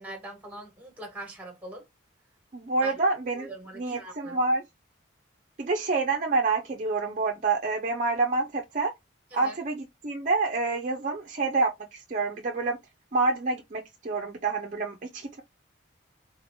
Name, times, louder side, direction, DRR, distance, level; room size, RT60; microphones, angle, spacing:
voice 1, 0.0-1.8 2.8-3.0 3.3-4.4 9.3-9.6, right 1 dB, 10° right, 1.2 m, -42 dB
voice 2, 2.5-4.6 5.6-8.9 9.3-12.8 13.1-15.4, right 3 dB, 40° right, 0.5 m, -27 dB
3.8 x 2.9 x 2.6 m
head